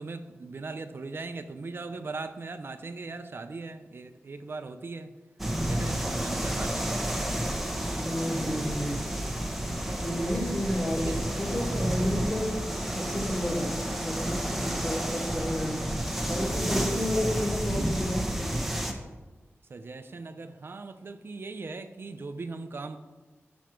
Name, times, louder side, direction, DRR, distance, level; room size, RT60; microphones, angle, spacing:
voice 1, 0.0-5.1 5.5-7.0 10.9-11.2 19.7-23.0, right 3 dB, 55° right, 8 dB, 0.5 m, -39 dB
sound 1, 5.4-18.9, right 1 dB, 5° right, 1.1 m, -30 dB
voice 2, 8.0-9.1 10.0-13.7 14.0-15.8 16.3-18.2, equal, 20° left, 0 dB, 2.0 m, -31 dB
10.0 x 6.2 x 4.4 m, 1.3 s
wide cardioid pair, 110°, 5 cm